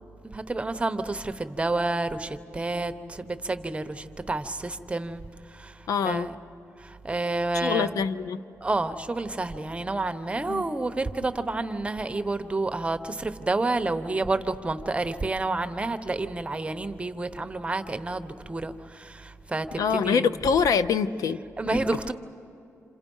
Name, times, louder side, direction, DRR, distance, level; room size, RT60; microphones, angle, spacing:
voice 1, 0.3-5.2 5.5-5.8 6.0-6.4 6.8-8.0 8.6-20.3 21.6-22.1, right 2 dB, 20° right, 9 dB, 0.9 m, -29 dB
voice 2, 5.9-6.3 7.6-8.4 10.5-10.6 19.8-21.4, left 6 dB, 80° left, 13 dB, 0.7 m, -24 dB
28.0 x 27.5 x 5.5 m, 2.6 s
cardioid pair, 95°, 6 cm